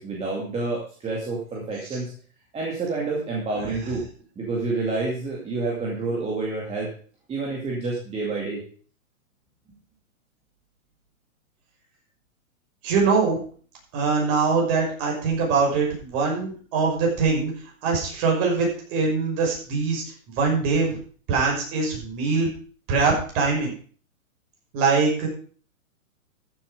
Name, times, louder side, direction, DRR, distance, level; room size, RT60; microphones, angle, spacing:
voice 1, 0.0-2.1 2.5-4.0 4.4-6.9 7.3-8.6, right 3 dB, 15° right, -3 dB, 2.4 m, -28 dB
voice 2, 12.8-13.4 13.9-17.5 17.8-20.0 20.4-21.0 21.3-22.5 22.9-23.7 24.7-25.3, right 4 dB, 35° right, -1 dB, 5.9 m, -22 dB
14.0 x 7.7 x 5.1 m, 0.43 s
hypercardioid pair, 140°, 42 cm